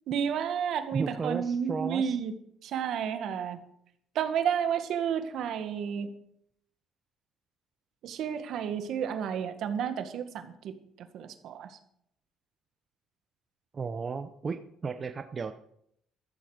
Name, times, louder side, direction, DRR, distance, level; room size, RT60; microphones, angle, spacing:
voice 1, 0.1-2.3 2.6-3.6 4.1-6.1 8.0-11.8, right 8 dB, 60° right, 8 dB, 1.7 m, -31 dB
voice 2, 0.9-2.2 13.7-15.5, right 5 dB, 30° right, 8 dB, 0.7 m, -34 dB
14.0 x 13.5 x 5.0 m, 0.70 s
cardioid pair, 145°, 0 cm